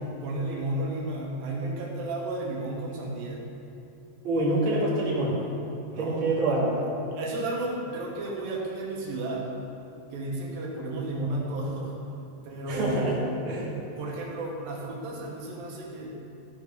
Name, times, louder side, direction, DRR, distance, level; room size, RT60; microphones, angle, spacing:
voice 1, 0.2-3.4 5.9-6.6 7.1-9.5 10.1-12.0 12.4-13.2 14.0-16.2, right 2 dB, 85° right, -2 dB, 2.9 m, -33 dB
voice 2, 4.2-5.4 6.0-6.7 12.7-13.7, right 1 dB, 40° right, -7 dB, 2.5 m, -26 dB
14.5 x 4.9 x 5.3 m, 2.8 s
omnidirectional pair, 4.1 m